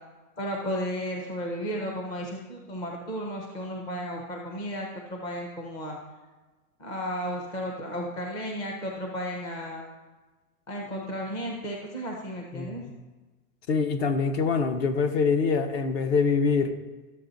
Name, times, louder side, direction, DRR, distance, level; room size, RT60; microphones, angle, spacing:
voice 1, 0.4-6.0 6.8-9.9 10.7-12.8, equal, 10° left, 0 dB, 0.5 m, -34 dB
voice 2, 12.5-12.9 13.7-16.7, left 5 dB, 45° left, 9 dB, 0.9 m, -25 dB
12.5 x 7.2 x 3.9 m, 1.2 s
supercardioid pair, 160°, 45 cm